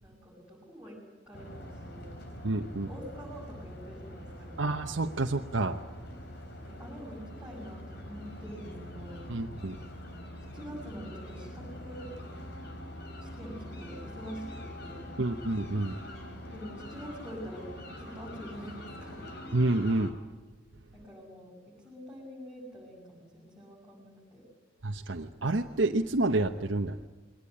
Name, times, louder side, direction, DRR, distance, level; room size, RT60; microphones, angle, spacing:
voice 1, 0.0-1.0 1.3-2.0 2.8-4.7 6.7-9.3 10.5-12.1 13.2-15.1 16.5-17.7 18.0-19.3 20.9-24.4, equal, 5° right, -8 dB, 7.5 m, -46 dB
sound 1, 1.3-20.1, left 1 dB, 60° left, 3.6 m, -44 dB
voice 2, 2.4-2.9 4.6-5.8 9.3-9.8 15.2-16.0 19.5-20.2 24.8-27.1, right 2 dB, 70° right, 3 dB, 1.0 m, -29 dB
22.5 x 19.0 x 9.8 m, 1.4 s
head